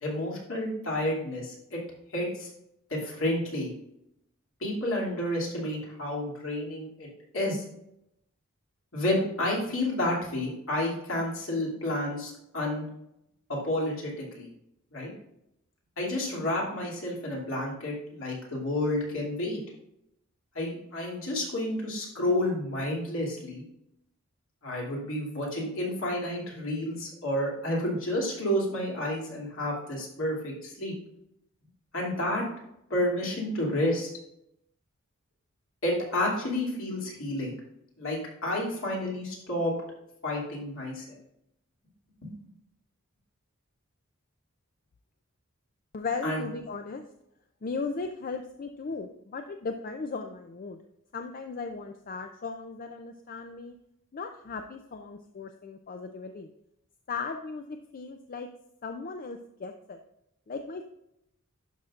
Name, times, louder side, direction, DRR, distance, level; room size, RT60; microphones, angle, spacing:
voice 1, 0.0-1.8 2.1-2.5 2.9-3.7 4.6-7.1 7.3-7.6 8.9-12.9 13.5-14.5 14.9-15.1 16.0-19.6 20.5-23.6 24.6-30.9 31.9-32.4 32.9-34.1 35.8-37.5 38.0-39.7 40.2-41.2 42.2-42.3 46.2-46.4, left 1 dB, 65° left, -3 dB, 2.6 m, -30 dB
voice 2, 45.9-47.0 47.6-50.8 51.1-53.8 54.1-56.5 57.1-58.5 58.8-60.0 60.5-60.8, left 4 dB, 40° left, 6 dB, 0.4 m, -37 dB
11.5 x 5.8 x 2.4 m, 0.81 s
head